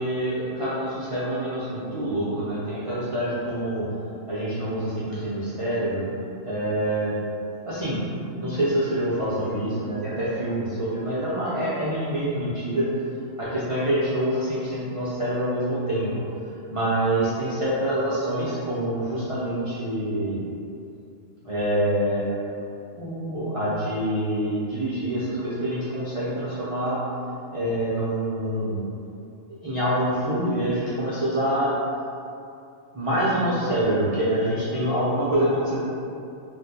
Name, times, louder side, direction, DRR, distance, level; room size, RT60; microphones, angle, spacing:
voice 1, 0.0-3.8 4.3-6.0 6.4-7.1 7.7-12.9 13.4-16.1 16.7-20.4 21.4-22.6 22.9-27.0 27.5-28.8 29.6-31.7 32.9-35.8, right 1 dB, 45° right, -10 dB, 0.4 m, -26 dB
2.6 x 2.2 x 4.0 m, 2.6 s
omnidirectional pair, 1.3 m